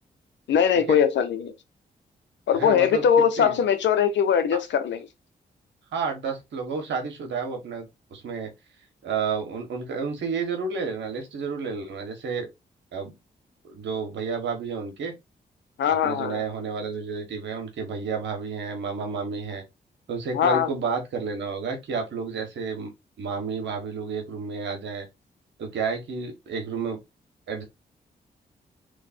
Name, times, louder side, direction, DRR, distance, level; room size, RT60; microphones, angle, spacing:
voice 1, 0.5-1.5 2.5-5.1 15.8-16.4 20.3-20.7, left 8 dB, 75° left, 0.9 m, -21 dB
voice 2, 2.5-3.0 3.4-3.6 5.9-8.5 9.0-12.5 12.9-13.1 13.6-15.1 15.9-19.6 20.1-22.9 23.2-25.1 25.6-27.0 27.5-27.6, right 5 dB, 80° right, 1.5 m, -31 dB
3.2 x 3.2 x 4.3 m
supercardioid pair, 40°, 19 cm